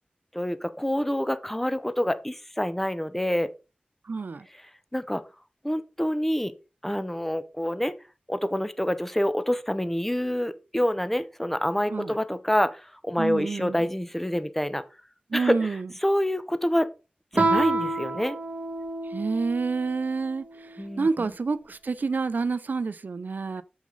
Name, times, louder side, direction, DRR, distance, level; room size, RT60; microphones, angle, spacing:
voice 1, 0.3-3.5 4.5-4.6 4.9-5.2 5.6-6.5 6.8-7.9 8.3-14.8 15.3-16.9 17.3-18.4 20.8-21.1, equal, 10° left, 0.8 m, -27 dB
voice 2, 4.1-4.5 11.9-12.2 13.2-13.9 15.3-15.9 19.1-20.7 21.0-23.6, right 4 dB, 75° right, 0.5 m, -28 dB
Guitar, 17.3-19.8, right 2 dB, 55° right, 1.6 m, -27 dB
6.5 x 6.3 x 3.9 m
wide cardioid pair, 75°, 3 cm